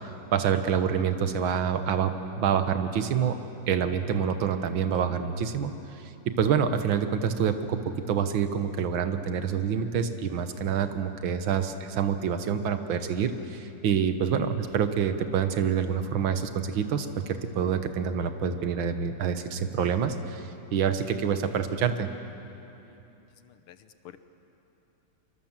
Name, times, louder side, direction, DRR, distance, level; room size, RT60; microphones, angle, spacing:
voice 1, 0.3-3.4 3.7-5.7 6.3-22.1, right 7 dB, 65° right, 8 dB, 1.9 m, -27 dB
voice 2, 22.8-24.2, left 11 dB, 80° left, 10 dB, 1.9 m, -52 dB
25.0 x 24.0 x 7.5 m, 2.9 s
omnidirectional pair, 2.4 m